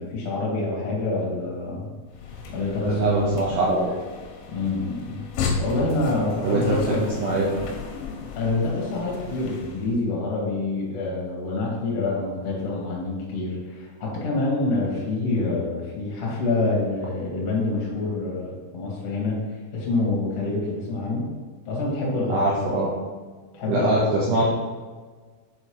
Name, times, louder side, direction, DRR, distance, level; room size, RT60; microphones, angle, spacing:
voice 1, 0.0-1.9 2.5-3.2 4.5-5.2 5.6-7.1 8.3-19.4 19.7-21.3 21.6-22.4 23.5-23.9, left 2 dB, 65° left, -5 dB, 1.6 m, -26 dB
sound 1, 2.1-10.0, left 5 dB, 85° left, 3.3 m, -34 dB
voice 2, 2.8-4.0 6.4-7.5 22.3-22.9 23.7-24.4, right 2 dB, 80° right, -5 dB, 2.4 m, -23 dB
7.9 x 4.2 x 3.2 m, 1.4 s
omnidirectional pair, 5.8 m